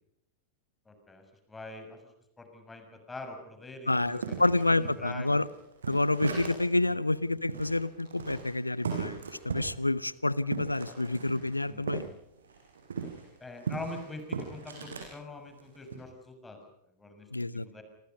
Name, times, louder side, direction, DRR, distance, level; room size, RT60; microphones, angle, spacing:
voice 1, 0.9-2.0 2.4-4.4 4.7-5.4 6.8-7.0 11.6-11.9 13.4-16.6 17.0-17.3 17.5-17.8, left 2 dB, 10° left, 6 dB, 6.2 m, -44 dB
voice 2, 3.9-5.5 5.9-9.2 9.4-12.1 17.3-17.8, left 2 dB, 85° left, 19 dB, 0.9 m, -28 dB
sound 1, 4.0-6.8 7.1-7.2 7.5-12.1 12.4-15.1 15.6-16.0, right 5 dB, 70° right, 6.1 m, -38 dB
27.5 x 27.0 x 5.4 m, 0.80 s
figure-of-eight pair, 90°, 0 cm